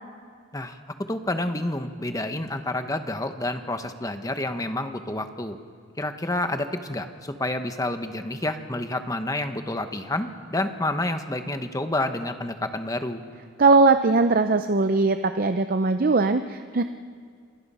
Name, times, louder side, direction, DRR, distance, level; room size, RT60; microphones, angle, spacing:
voice 1, 1.1-5.6 6.0-13.2, left 1 dB, 15° left, 8 dB, 1.1 m, -29 dB
voice 2, 13.6-16.8, right 3 dB, 45° right, 9 dB, 0.5 m, -20 dB
28.0 x 22.0 x 5.6 m, 2.1 s
head